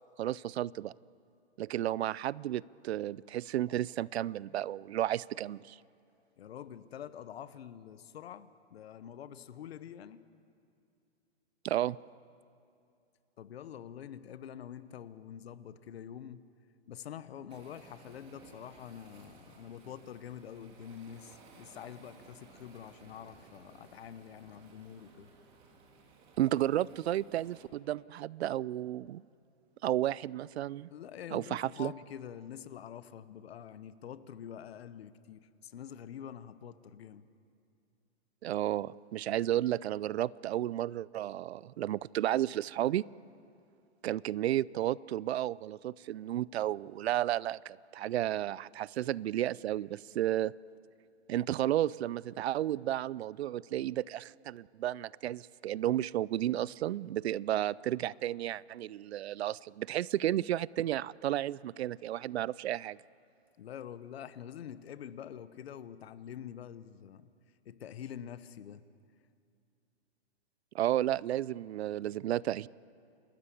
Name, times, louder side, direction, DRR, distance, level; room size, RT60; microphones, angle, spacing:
voice 1, 0.2-0.9 1.6-5.8 11.6-12.0 26.4-29.2 29.8-30.9 31.3-31.9 38.4-43.0 44.0-50.5 51.3-63.0 70.7-72.7, right 13 dB, 70° right, 0.5 m, -32 dB
voice 2, 6.4-10.2 13.4-16.5 16.9-25.3 30.9-37.3 63.6-67.3 67.6-68.8, left 9 dB, 65° left, 1.0 m, -46 dB
Waves surf, 17.5-27.6, right 4 dB, 15° right, 1.7 m, -58 dB
29.5 x 13.5 x 8.4 m
hypercardioid pair, 175°, 34 cm